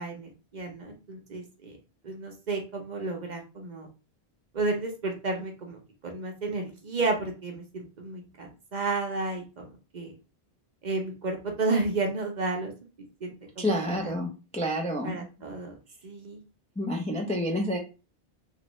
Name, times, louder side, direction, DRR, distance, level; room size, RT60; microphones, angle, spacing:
voice 1, 0.0-1.8 2.0-3.9 4.5-10.1 10.8-12.7 13.0-14.1 15.0-15.7 16.0-16.4, right 3 dB, 50° right, 2 dB, 0.8 m, -32 dB
voice 2, 13.6-15.2 16.8-17.8, equal, 10° left, 1 dB, 0.4 m, -29 dB
3.1 x 2.6 x 3.0 m, 0.32 s
omnidirectional pair, 1.0 m